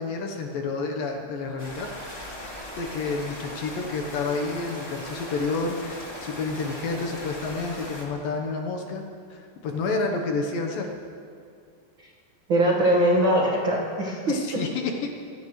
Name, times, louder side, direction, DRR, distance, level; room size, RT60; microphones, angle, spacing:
voice 1, 0.0-1.9 2.8-10.9 14.3-15.1, left 3 dB, 70° left, 2 dB, 2.5 m, -30 dB
sound 1, 1.6-8.0, left 1 dB, 15° left, 2.5 m, -38 dB
voice 2, 12.5-14.6, right 1 dB, 85° right, -3 dB, 1.1 m, -22 dB
24.5 x 17.5 x 3.2 m, 2.3 s
omnidirectional pair, 4.9 m